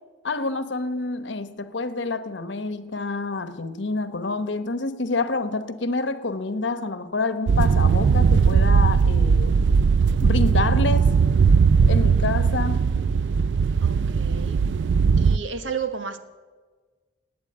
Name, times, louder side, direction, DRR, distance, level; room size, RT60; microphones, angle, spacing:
voice 1, 0.2-9.6 10.2-11.2 11.9-12.9, left 3 dB, 70° left, 1.0 m, -28 dB
sound 1, 7.5-15.4, right 5 dB, 65° right, 0.4 m, -19 dB
voice 2, 13.8-14.6 15.2-16.2, right 6 dB, 80° right, 1.3 m, -32 dB
19.0 x 8.6 x 8.7 m
head